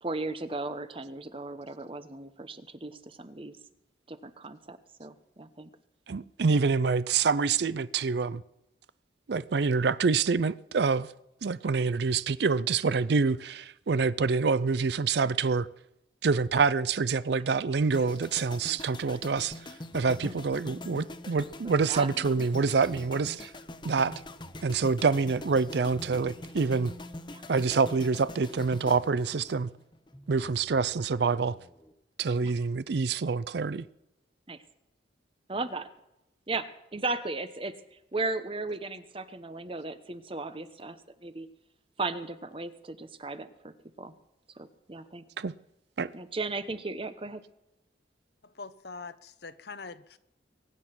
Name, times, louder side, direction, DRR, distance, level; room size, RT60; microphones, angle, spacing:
voice 1, 0.0-3.5 4.1-5.7 20.2-20.4 21.9-22.4 27.3-27.4 32.4-32.5 34.5-34.6 35.5-35.9 36.5-41.5 42.0-44.1 44.6-45.2 46.1-47.4, right 3 dB, 30° right, 1.0 m, -36 dB
voice 2, 6.1-8.4 9.3-11.1 11.4-15.7 16.2-19.5 19.9-23.5 23.8-24.1 24.6-26.9 27.5-29.7 30.3-31.6 32.2-33.8 45.4-45.5 46.0-46.1, right 4 dB, 65° right, 0.5 m, -26 dB
sound 1, 17.9-30.1 30.4-30.7, left 1 dB, 25° left, 0.9 m, -44 dB
sound 2, 19.9-22.2 22.6-23.5 24.1-28.2 28.6-29.4 30.1-31.9, left 1 dB, 10° left, 1.2 m, -51 dB
voice 3, 48.4-50.2, left 4 dB, 60° left, 0.9 m, -43 dB
23.0 x 9.8 x 6.0 m
head